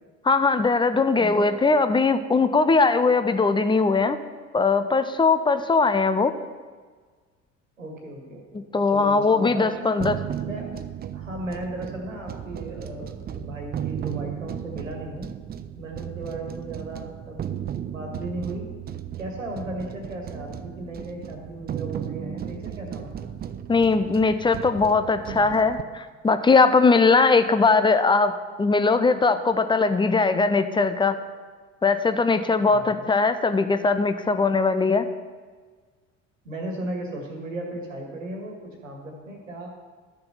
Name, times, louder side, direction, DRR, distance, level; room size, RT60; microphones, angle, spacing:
voice 1, 0.2-4.2 4.5-6.3 8.7-10.2 23.7-28.3 28.6-31.2 31.8-35.1, left 4 dB, 10° left, 10 dB, 0.7 m, -20 dB
voice 2, 1.2-1.5 7.8-10.0 10.4-10.8 11.1-15.3 15.8-18.8 19.2-23.3 32.6-33.0 36.4-39.7, right 1 dB, 80° right, 1 dB, 1.9 m, -36 dB
sound 1, 10.0-25.8, right 10 dB, 25° right, 0.5 m, -35 dB
12.5 x 6.7 x 5.6 m, 1.5 s
figure-of-eight pair, 60°, 38 cm